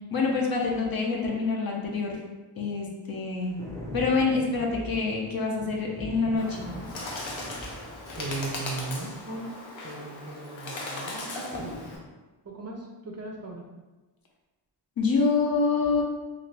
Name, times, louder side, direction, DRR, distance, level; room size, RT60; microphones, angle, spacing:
voice 1, 0.1-2.2 2.6-3.5 3.9-6.7 15.0-16.0, left 4 dB, 55° left, -1 dB, 0.7 m, -26 dB
Thunder Single, 3.3-9.3 11.5-12.1, equal, 5° left, 0.6 m, -43 dB
Bird, 6.4-12.0, left 2 dB, 85° left, 0.7 m, -38 dB
voice 2, 8.2-9.5 9.8-11.9 12.4-13.7, right 3 dB, 35° right, 0 dB, 0.4 m, -37 dB
2.6 x 2.5 x 3.2 m, 1.2 s
wide cardioid pair, 120°, 44 cm